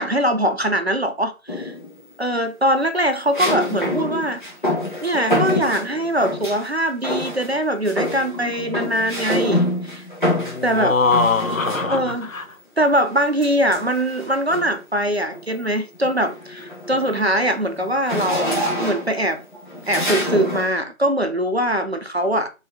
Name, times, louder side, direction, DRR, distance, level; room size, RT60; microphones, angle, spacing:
voice 1, 0.0-1.7 2.2-4.4 5.0-10.0 10.6-10.9 11.9-12.3 12.8-18.5 18.8-19.4 19.9-22.5, right 1 dB, 50° right, 0.5 m, -22 dB
sound 1, 1.5-2.0 3.3-6.7 7.0-7.6 7.8-12.3 13.4-14.8 15.3-15.6 15.9-20.7, left 1 dB, 35° left, 1.1 m, -26 dB
voice 2, 10.3-12.4, left 3 dB, 70° left, 0.9 m, -22 dB
3.9 x 2.6 x 3.6 m
figure-of-eight pair, 175°, 42 cm